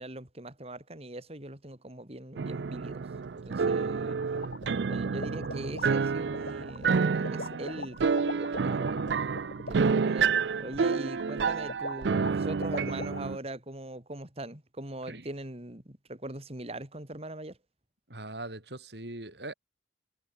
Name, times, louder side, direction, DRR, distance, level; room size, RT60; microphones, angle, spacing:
voice 1, 0.0-3.1 3.5-4.2 4.9-9.1 9.7-10.3 10.6-17.6, right 1 dB, 35° right, 3.8 m, -41 dB
sound 1, 2.4-13.4, right 5 dB, 85° right, 0.5 m, -29 dB
sound 2, 4.1-13.2, left 2 dB, 70° left, 4.1 m, -40 dB
voice 2, 18.1-19.5, right 2 dB, 70° right, 5.3 m, -41 dB
head